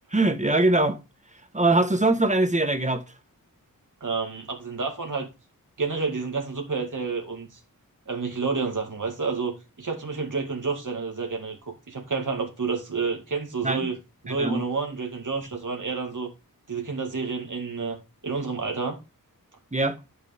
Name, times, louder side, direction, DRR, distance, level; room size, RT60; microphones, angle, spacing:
voice 1, 0.1-1.0 1.5-3.0 13.6-13.9 14.3-14.6 19.7-20.0, right 2 dB, 20° right, 1.4 m, -22 dB
voice 2, 4.0-5.3 5.8-7.5 8.1-14.0 14.2-16.3 16.7-18.0 18.2-19.0, right 4 dB, 60° right, 2.2 m, -29 dB
10.5 x 6.7 x 3.6 m
wide cardioid pair, 70°, 35 cm